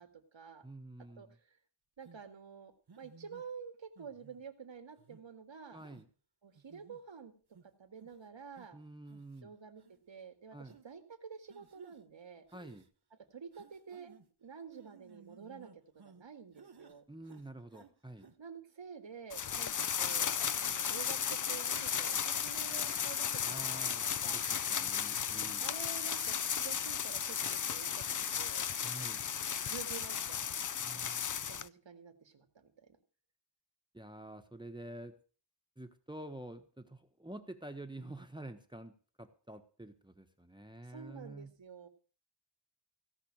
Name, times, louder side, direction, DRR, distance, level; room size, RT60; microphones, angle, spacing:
voice 1, 0.0-0.6 1.2-1.6 2.0-5.8 6.4-7.3 7.8-8.8 9.4-12.4 13.3-17.0 18.4-20.3 20.6-23.9 24.2-24.4 25.6-28.0 28.4-28.7 29.6-30.4 30.9-31.1 31.5-32.7 40.9-41.9, right 6 dB, 90° right, 7 dB, 2.2 m, -49 dB
voice 2, 0.6-1.4 5.7-6.1 8.7-9.5 10.5-10.7 12.5-12.8 17.1-18.3 23.4-25.7 28.8-29.2 30.8-31.3 33.9-35.1 35.8-41.5, right 1 dB, 10° right, 7 dB, 1.2 m, -48 dB
sound 1, 2.0-2.2 2.9-3.4 4.0-4.4 5.0-5.2 5.8-6.1 6.5-7.0 7.5-7.6 8.0-8.2 8.6-8.7 9.1-9.4 9.8-9.9 10.7-10.9 11.5-12.0 12.5-12.9 13.5-14.3 14.7-16.2 16.5-17.0 17.2-17.9 18.2-18.3, right 5 dB, 60° right, 1.5 m, -58 dB
sound 2, 19.3-31.7, left 7 dB, 45° left, 0.5 m, -35 dB
17.0 x 5.9 x 8.8 m, 0.40 s
wide cardioid pair, 90°, 44 cm